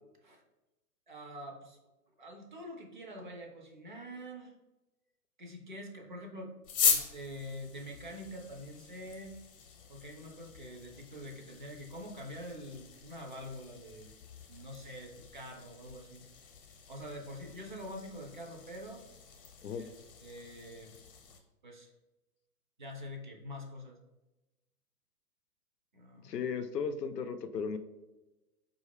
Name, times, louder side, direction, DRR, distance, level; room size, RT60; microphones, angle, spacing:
voice 1, 1.1-1.8 2.2-4.5 5.4-6.5 6.8-9.4 9.9-14.1 14.5-16.2 16.9-19.0 19.7-19.9 20.2-20.9 21.6-21.9 22.8-24.0 25.9-26.4, equal, 35° right, 2 dB, 0.4 m, -45 dB
sound 1, 6.6-21.4, left 6 dB, 35° left, 0.8 m, -39 dB
voice 2, 26.2-27.8, left 6 dB, 85° left, 9 dB, 0.6 m, -35 dB
4.6 x 2.5 x 3.2 m, 1.0 s
figure-of-eight pair, 120°, 47 cm